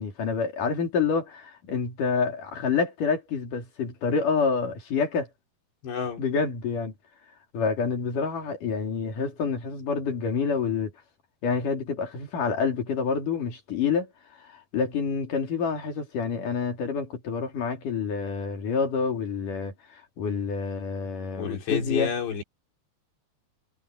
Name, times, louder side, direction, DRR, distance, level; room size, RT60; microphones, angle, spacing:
voice 1, 0.0-5.3 6.2-6.9 7.5-10.9 11.4-14.1 14.4-22.1, left 5 dB, 50° left, 4.5 m, -28 dB
voice 2, 5.8-6.2 21.4-22.4, left 7 dB, 90° left, 6.7 m, -29 dB
omnidirectional pair, 4.8 m